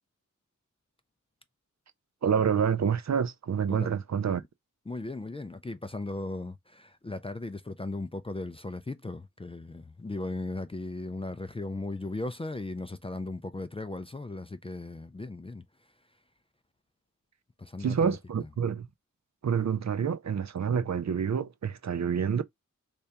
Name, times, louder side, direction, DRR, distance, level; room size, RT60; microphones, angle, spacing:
voice 1, 2.2-4.4 17.8-18.9 19.4-22.4, right 7 dB, 60° right, 0.5 m, -28 dB
voice 2, 4.9-15.6 17.6-18.5, left 2 dB, 20° left, 0.3 m, -37 dB
3.5 x 3.3 x 2.8 m
wide cardioid pair, 65°, 32 cm